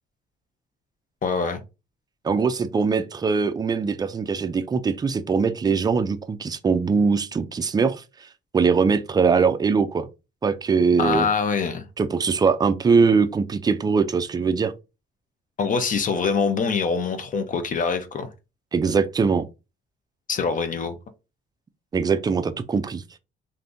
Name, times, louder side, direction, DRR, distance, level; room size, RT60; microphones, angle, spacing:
voice 1, 1.2-1.6 11.0-11.9 15.6-18.3 20.3-20.9, left 5 dB, 45° left, 0.6 m, -24 dB
voice 2, 2.2-8.3 8.5-10.1 10.4-11.3 12.0-14.7 18.7-19.5 21.9-23.0, right 5 dB, 20° right, 0.3 m, -22 dB
3.4 x 2.6 x 2.5 m
cardioid pair, 130°, 20 cm